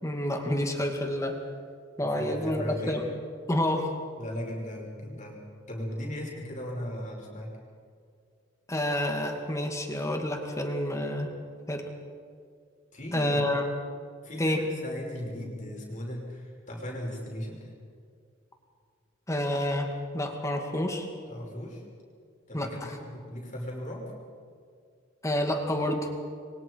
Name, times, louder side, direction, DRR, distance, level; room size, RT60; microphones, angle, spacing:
voice 1, 0.0-1.4 2.0-3.0 3.5-3.9 8.7-11.3 11.7-11.9 13.1-13.6 14.4-14.6 19.3-21.1 22.5-22.9 25.2-26.1, left 1 dB, 15° left, 3 dB, 2.4 m, -29 dB
voice 2, 2.0-3.0 4.2-5.4 5.7-7.5 12.9-13.4 14.2-17.7 21.3-21.8 22.5-24.1, equal, 40° left, -2 dB, 5.8 m, -37 dB
29.5 x 23.5 x 4.8 m, 2.2 s
head